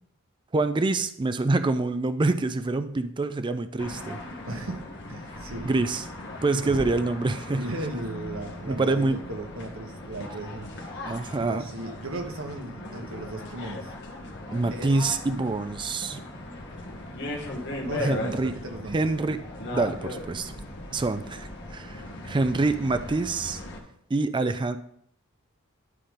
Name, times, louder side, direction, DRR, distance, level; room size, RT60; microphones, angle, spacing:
voice 1, 0.5-4.2 5.6-6.0 6.4-7.6 8.7-9.2 11.0-11.6 14.5-16.2 18.0-18.6 18.9-19.4 19.7-20.5 20.9-23.6 24.1-24.8, right 3 dB, 25° right, 10 dB, 0.4 m, -26 dB
sound 1, 3.8-23.8, left 1 dB, 55° left, 1.7 m, -38 dB
voice 2, 4.5-4.8 5.1-5.8 6.6-6.8 7.5-13.9 14.7-15.1 17.8-19.1, right 2 dB, 70° right, 4 dB, 1.3 m, -37 dB
11.0 x 3.8 x 5.1 m, 0.67 s
head